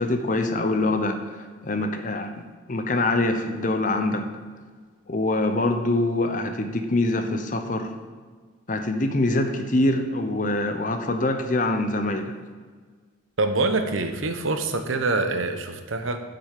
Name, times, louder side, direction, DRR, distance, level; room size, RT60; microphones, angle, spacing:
voice 1, 0.0-2.3 2.7-4.3 5.1-7.9 8.7-12.3, left 2 dB, 40° left, 6 dB, 0.8 m, -24 dB
voice 2, 13.4-16.2, right 3 dB, 80° right, 7 dB, 0.9 m, -25 dB
7.0 x 6.3 x 7.5 m, 1.5 s
head